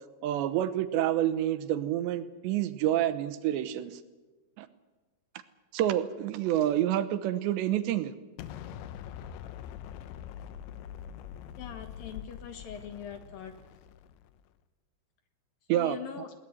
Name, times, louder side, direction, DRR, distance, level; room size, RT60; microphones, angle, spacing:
voice 1, 0.2-4.0 4.6-4.7 5.7-8.1 15.7-16.0, right 12 dB, 85° right, 12 dB, 3.3 m, -28 dB
Explosion, 8.4-14.4, left 9 dB, 85° left, 3.3 m, -44 dB
voice 2, 11.6-13.5 15.7-16.3, left 8 dB, 65° left, 7 dB, 2.8 m, -42 dB
21.5 x 19.0 x 9.3 m, 1.2 s
omnidirectional pair, 5.1 m